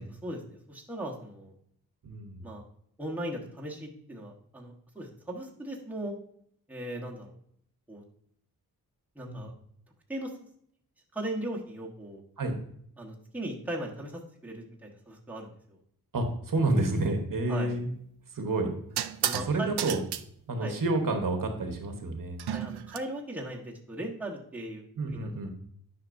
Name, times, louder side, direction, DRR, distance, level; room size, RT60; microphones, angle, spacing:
voice 1, 0.0-1.5 2.4-2.6 3.0-6.1 6.7-7.4 7.9-8.0 9.1-9.5 10.1-10.3 11.1-12.2 13.0-15.8 17.5-17.7 19.2-19.7 20.6-20.7 22.5-25.5, right 1 dB, 5° right, -2 dB, 1.2 m, -38 dB
voice 2, 2.0-2.4 9.3-9.5 12.4-12.5 16.1-17.9 18.3-18.8 19.3-20.0 20.5-22.4 25.0-25.5, right 2 dB, 55° right, 4 dB, 1.1 m, -29 dB
sound 1, 17.7-17.9 19.0-19.5 19.8-20.2 22.4-23.0, right 10 dB, 90° right, 0.5 m, -32 dB
9.7 x 5.8 x 2.6 m, 0.67 s
wide cardioid pair, 145°, 38 cm